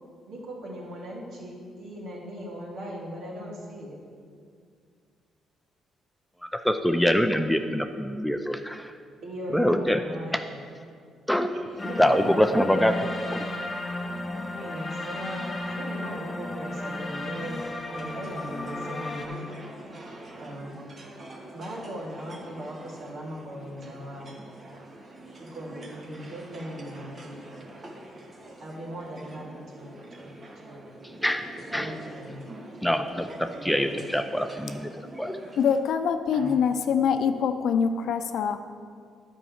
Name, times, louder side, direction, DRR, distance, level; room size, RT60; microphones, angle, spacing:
voice 1, 0.3-4.0 9.2-10.6 11.5-12.2 14.3-17.6 17.9-19.5 20.4-20.8 21.5-24.3 25.4-27.4 28.6-30.4 30.6-30.9 31.6-32.4 33.5-34.1 36.3-36.6, equal, 65° right, -4 dB, 2.8 m, -39 dB
voice 2, 6.4-9.0 9.5-10.0 10.3-10.4 11.3-13.5 31.2-32.4 32.8-35.5, equal, 5° left, 7 dB, 0.5 m, -25 dB
sound 1, 11.8-19.3, left 2 dB, 25° left, 1.5 m, -34 dB
sound 2, 17.9-35.8, right 1 dB, 40° right, 1.5 m, -45 dB
voice 3, 35.6-38.6, left 7 dB, 75° left, 8 dB, 0.6 m, -24 dB
9.9 x 5.4 x 7.2 m, 2.2 s
cardioid pair, 90°, 0 cm